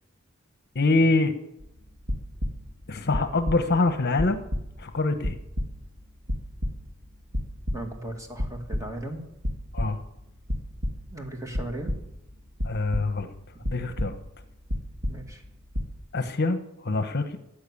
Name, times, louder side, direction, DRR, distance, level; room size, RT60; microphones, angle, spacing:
voice 1, 0.7-1.3 2.9-4.4 4.8-5.4 9.7-10.0 12.6-13.3 13.7-14.2 16.1-17.4, left 3 dB, 50° left, 9 dB, 1.0 m, -24 dB
sound 1, 1.6-2.7 3.1-3.9 4.1-5.9 6.2-7.0 7.3-8.1 8.4-9.0 9.4-10.1 10.5-11.2 11.5-12.2 12.6-13.4 13.6-14.4 14.7-15.5 15.7-16.0, equal, 80° right, 2.2 m, -31 dB
voice 2, 7.7-9.2 11.1-11.9 13.5-13.6 15.1-15.4, right 1 dB, 15° right, 3 dB, 2.3 m, -37 dB
15.0 x 9.1 x 8.5 m, 0.85 s
head